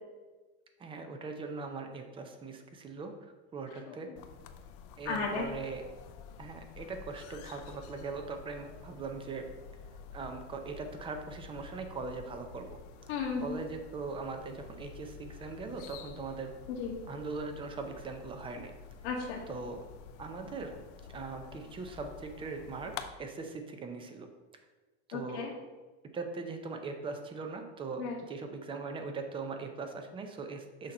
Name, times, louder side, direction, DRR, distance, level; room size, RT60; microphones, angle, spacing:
voice 1, 0.8-4.1 5.0-5.8 6.4-9.5 10.1-12.7 13.4-16.5 17.1-18.7 19.5-19.8 20.2-20.7 21.1-24.3 25.1-25.5 26.1-30.9, right 4 dB, 15° right, 5 dB, 0.5 m, -40 dB
sound 1, 4.2-23.1, left 7 dB, 55° left, 0.5 m, -49 dB
voice 2, 5.0-5.5 13.1-13.6 16.7-17.0 19.0-19.4 25.1-25.5 28.0-28.2, left 5 dB, 90° left, -2 dB, 1.2 m, -34 dB
6.3 x 2.9 x 5.3 m, 1.3 s
supercardioid pair, 145°, 33 cm